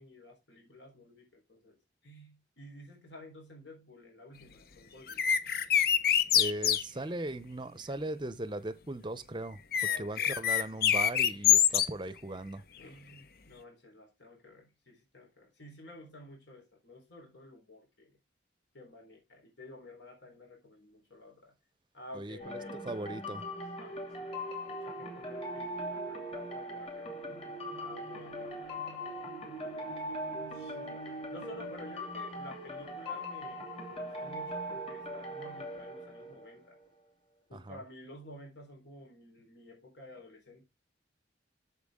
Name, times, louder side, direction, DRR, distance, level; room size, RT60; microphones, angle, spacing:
voice 1, 0.0-1.8 2.0-5.3 9.8-10.4 12.8-18.2 18.7-21.5 21.9-22.8 23.6-24.3 24.7-27.2 27.8-29.2 29.6-36.8 37.5-40.7, left 1 dB, 75° left, 4.0 m, -52 dB
sound 1, 5.1-6.8 9.7-11.9, left 9 dB, 55° left, 0.6 m, -25 dB
voice 2, 6.3-9.6 10.0-12.6 22.1-23.4 37.5-37.8, right 2 dB, 25° right, 0.7 m, -38 dB
sound 2, 22.4-36.9, equal, 30° left, 2.7 m, -40 dB
8.0 x 7.0 x 3.6 m
head